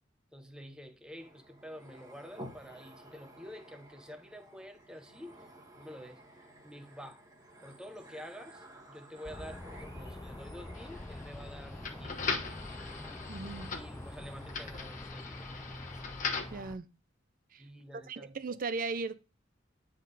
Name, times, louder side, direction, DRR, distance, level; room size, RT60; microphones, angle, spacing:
voice 1, 0.3-5.5 5.8-6.2 6.6-7.3 7.6-12.8 13.5-15.5 15.9-16.0 17.6-18.4, equal, 5° right, 0.8 m, -49 dB
sound 1, 1.2-15.1, right 1 dB, 20° right, 1.5 m, -54 dB
sound 2, 9.2-16.8, left 1 dB, 15° left, 0.4 m, -45 dB
sound 3, 10.7-16.6, left 5 dB, 40° left, 1.2 m, -40 dB
voice 2, 13.3-13.7 16.5-16.9 17.5-17.6 18.1-19.1, right 4 dB, 45° right, 0.5 m, -37 dB
9.5 x 3.7 x 4.0 m
head